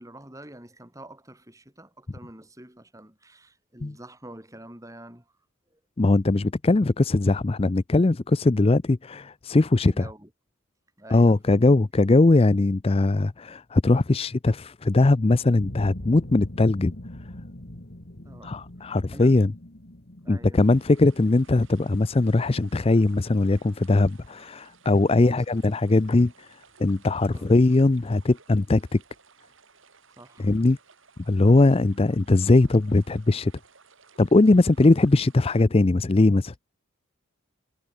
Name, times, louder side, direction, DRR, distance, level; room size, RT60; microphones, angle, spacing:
voice 1, 0.0-5.3 5.7-5.8 9.8-10.3 11.0-11.5 18.2-19.5 20.2-20.8 25.1-25.8 27.3-27.5 30.2-30.5, right 1 dB, 15° right, 3.9 m, -46 dB
voice 2, 6.0-10.1 11.1-16.9 18.4-19.5 20.3-26.5 26.8-29.0 30.4-30.8 31.3-33.5 34.2-36.5, left 2 dB, 25° left, 0.5 m, -20 dB
sound 1, 15.6-24.4 24.7-25.3, left 1 dB, 45° left, 2.1 m, -42 dB
sound 2, 20.5-35.6, right 5 dB, 65° right, 6.5 m, -57 dB
head